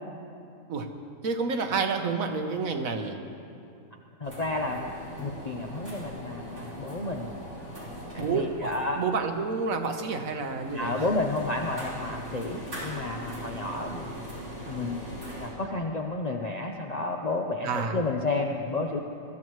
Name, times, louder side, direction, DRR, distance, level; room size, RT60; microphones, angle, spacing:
voice 1, 1.2-3.2 8.2-11.0 17.6-17.9, right 4 dB, 70° right, 5 dB, 1.4 m, -29 dB
voice 2, 4.2-4.9 5.2-7.3 8.1-9.0 10.7-14.1 14.6-15.1 15.4-19.0, left 2 dB, 40° left, 1 dB, 0.7 m, -31 dB
sound 1, 4.2-15.5, equal, 45° right, 4.8 m, -41 dB
22.0 x 13.5 x 3.1 m, 2.6 s
omnidirectional pair, 1.5 m